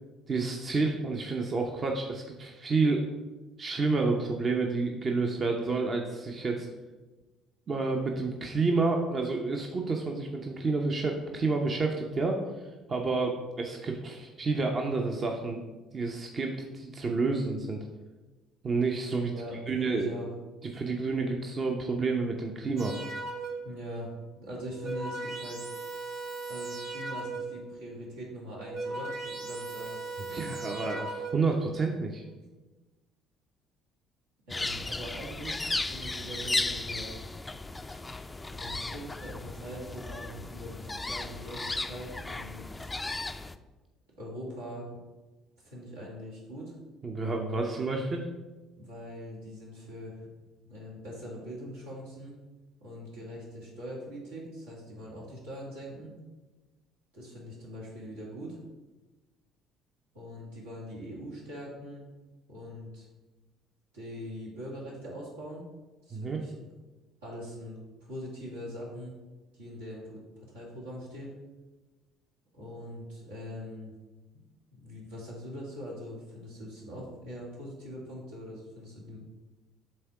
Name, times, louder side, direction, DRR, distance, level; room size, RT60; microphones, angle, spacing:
voice 1, 0.3-3.0 3.6-6.7 7.7-12.4 12.9-15.6 15.9-17.9 18.6-19.3 19.7-20.1 20.7-23.0 30.2-32.2 47.0-48.3 66.1-66.4, right 3 dB, 35° right, 2 dB, 0.8 m, -29 dB
voice 2, 19.3-20.3 23.6-24.1 24.4-25.7 26.5-30.0 30.3-30.6 34.5-37.1 38.5-43.0 44.2-45.0 45.6-46.7 48.8-50.3 50.6-52.3 52.8-56.2 57.1-58.6 60.1-62.0 62.5-63.1 63.9-65.6 66.0-66.6 67.2-69.2 69.5-71.3 72.5-73.9 74.7-79.2, equal, 80° right, -5 dB, 2.2 m, -42 dB
sound 1, 22.8-23.8 24.5-27.7 28.4-31.6, right 3 dB, 55° right, 1.5 m, -38 dB
sound 2, 34.5-43.6, left 2 dB, 15° left, 0.4 m, -35 dB
7.6 x 3.6 x 4.8 m, 1.2 s
hypercardioid pair, 55°, 0 cm